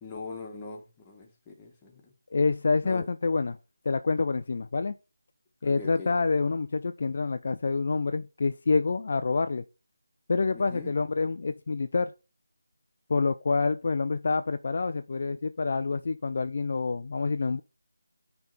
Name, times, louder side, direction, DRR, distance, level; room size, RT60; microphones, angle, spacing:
voice 1, 0.0-2.0 2.8-3.1 5.6-6.1 10.5-10.9, left 4 dB, 15° left, 1.4 m, -41 dB
voice 2, 2.3-3.6 3.9-4.9 5.6-9.6 10.3-12.1 13.1-17.6, left 4 dB, 45° left, 0.4 m, -27 dB
9.2 x 3.4 x 4.1 m
figure-of-eight pair, 160°, 0 cm